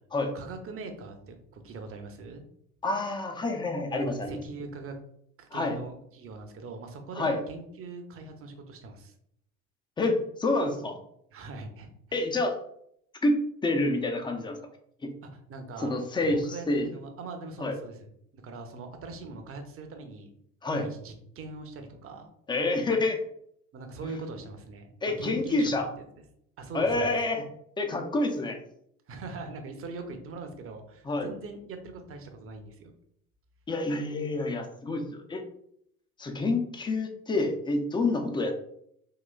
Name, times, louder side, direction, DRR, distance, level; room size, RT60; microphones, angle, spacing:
voice 1, 0.3-2.4 3.9-4.9 5.4-9.1 11.3-12.2 15.5-15.9 16.2-20.3 20.7-22.3 23.7-24.9 25.2-25.7 26.6-27.1 29.1-32.9, right 3 dB, 30° right, 5 dB, 0.7 m, -41 dB
voice 2, 2.8-4.4 5.5-5.8 7.1-7.4 10.0-11.0 12.1-12.6 13.2-14.6 15.0-15.1 15.8-16.9 17.6-17.7 20.6-20.9 22.5-23.2 25.0-25.9 26.7-27.5 27.8-28.6 31.0-31.3 33.7-35.4 36.2-38.5, left 2 dB, 10° left, 4 dB, 0.4 m, -28 dB
3.9 x 2.9 x 2.3 m, 0.72 s
figure-of-eight pair, 60°, 44 cm